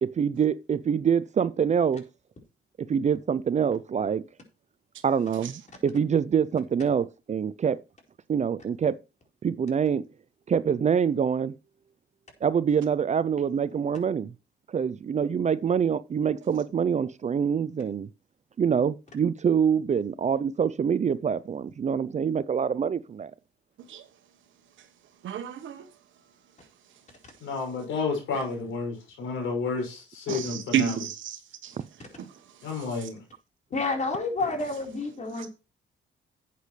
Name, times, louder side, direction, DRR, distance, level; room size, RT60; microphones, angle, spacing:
voice 1, 0.0-2.1 2.8-4.2 5.0-7.8 8.3-8.9 9.4-10.1 10.5-11.5 12.4-14.3 14.7-18.1 18.6-23.3 30.3-30.4 31.8-31.9, right 7 dB, 35° right, 0.5 m, -25 dB
voice 2, 25.2-25.9 30.3-31.4 31.6-31.7, right 9 dB, 75° right, 1.2 m, -30 dB
voice 3, 27.4-31.0 32.6-33.2, left 4 dB, 85° left, 6.2 m, -31 dB
voice 4, 33.7-35.5, left 3 dB, 35° left, 4.3 m, -29 dB
11.5 x 8.4 x 3.2 m
cardioid pair, 90°, 20 cm